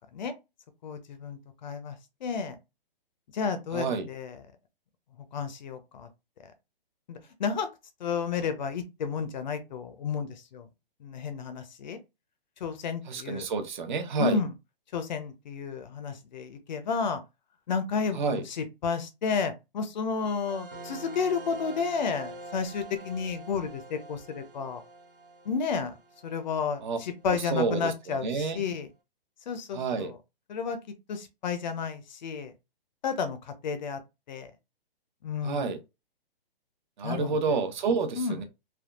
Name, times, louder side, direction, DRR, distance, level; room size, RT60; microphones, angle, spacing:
voice 1, 0.8-2.0 2.2-2.6 3.3-4.4 5.3-6.1 7.1-7.7 8.0-10.7 11.0-12.0 12.6-13.5 14.2-14.5 14.9-17.2 17.7-24.8 25.5-25.9 26.2-28.9 29.5-30.1 30.5-30.8 31.1-32.5 33.0-34.0 34.3-34.5 35.2-35.7 37.0-37.6 38.2-38.4, left 5 dB, 50° left, 0.7 m, -32 dB
voice 2, 3.7-4.1 13.1-14.4 18.1-18.4 26.8-27.0 27.3-28.6 29.7-30.1 35.4-35.8 37.0-38.4, right 5 dB, 55° right, 0.8 m, -29 dB
sound 1, 20.2-27.3, right 2 dB, 20° right, 0.3 m, -45 dB
3.5 x 2.3 x 2.3 m
hypercardioid pair, 155°, 29 cm